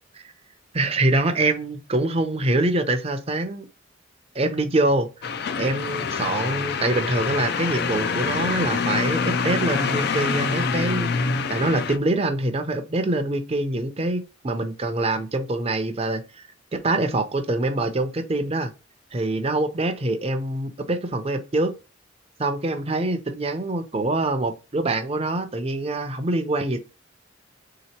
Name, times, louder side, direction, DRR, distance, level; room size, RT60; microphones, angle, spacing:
voice 1, 0.7-3.7 4.3-5.1 5.5-11.1 11.5-16.4 16.7-18.7 19.1-21.7 22.4-26.8, right 2 dB, 30° right, 0.6 m, -24 dB
sound 1, 5.2-12.0, left 5 dB, 55° left, 0.4 m, -26 dB
3.7 x 2.9 x 4.3 m
head